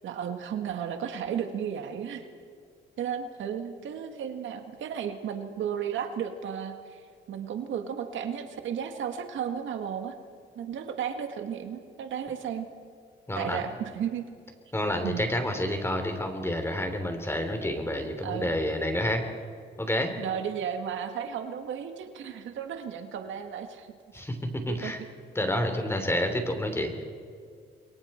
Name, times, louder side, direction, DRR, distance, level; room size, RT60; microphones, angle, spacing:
voice 1, 0.0-2.3 3.0-10.2 10.6-12.7 13.3-14.2 15.0-15.2 18.2-18.5 20.2-23.9 24.7-25.1, right 8 dB, 75° right, 6 dB, 1.8 m, -34 dB
voice 2, 13.3-13.6 14.7-19.2 19.8-20.1 24.1-25.0 25.4-27.0, left 1 dB, 10° left, 5 dB, 3.5 m, -29 dB
29.5 x 23.0 x 4.5 m, 2.1 s
cardioid pair, 90°, 20 cm